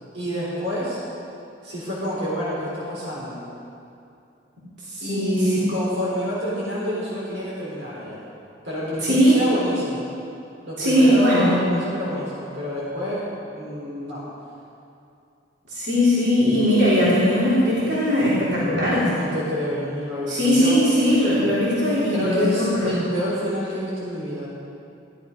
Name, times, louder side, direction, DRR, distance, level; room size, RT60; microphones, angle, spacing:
voice 1, 0.1-1.0 1.6-3.4 5.0-8.2 8.6-10.1 10.6-14.2 19.1-20.8 21.2-21.3 22.1-24.5, equal, 80° right, -7 dB, 3.8 m, -28 dB
voice 2, 4.9-5.4 9.0-9.5 10.8-11.6 15.7-19.1 20.2-23.0, equal, 65° right, -9 dB, 3.5 m, -19 dB
15.5 x 11.0 x 5.2 m, 2.6 s
head